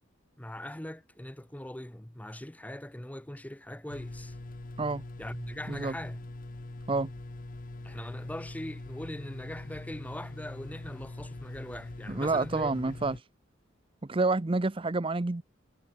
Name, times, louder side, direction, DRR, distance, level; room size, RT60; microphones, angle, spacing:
voice 1, 0.4-4.4 5.2-6.2 7.8-12.9, left 1 dB, 10° left, 0.9 m, -41 dB
sound 1, 3.9-13.2, left 2 dB, 45° left, 1.0 m, -43 dB
voice 2, 12.1-13.2 14.0-15.4, right 3 dB, 25° right, 0.6 m, -28 dB
head